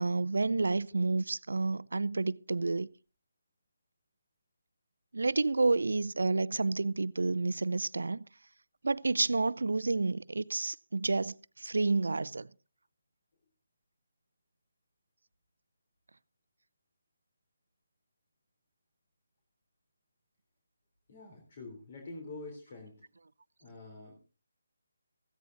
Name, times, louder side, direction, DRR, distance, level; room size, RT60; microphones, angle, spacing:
voice 1, 0.0-2.9 5.1-8.2 8.8-12.5, right 3 dB, 70° right, 0.6 m, -30 dB
voice 2, 21.1-23.0 23.6-24.2, left 2 dB, 45° left, 3.7 m, -46 dB
17.0 x 15.5 x 2.7 m
figure-of-eight pair, 150°, 0 cm